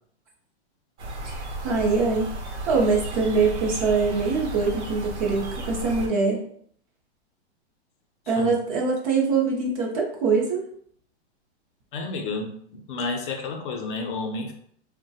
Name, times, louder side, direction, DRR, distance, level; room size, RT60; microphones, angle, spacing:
sound 1, 1.0-6.1, right 1 dB, 80° right, 0.8 m, -34 dB
voice 1, 1.2-2.3 2.7-6.4 8.3-10.6, right 4 dB, 30° right, -1 dB, 0.5 m, -23 dB
voice 2, 11.9-14.5, left 3 dB, 50° left, 2 dB, 0.6 m, -31 dB
2.9 x 2.1 x 2.7 m, 0.62 s
hypercardioid pair, 150°, 34 cm